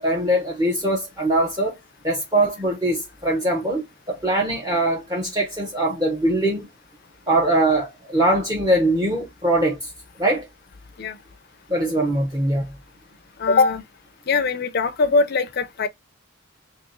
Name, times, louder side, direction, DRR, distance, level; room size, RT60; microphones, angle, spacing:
voice 1, 0.0-1.8 2.0-6.7 7.3-9.9 10.2-10.5 11.7-12.7, right 1 dB, 15° right, 0.7 m, -22 dB
voice 2, 13.4-13.8 14.3-15.9, left 4 dB, 50° left, 0.5 m, -21 dB
2.9 x 2.9 x 3.8 m
head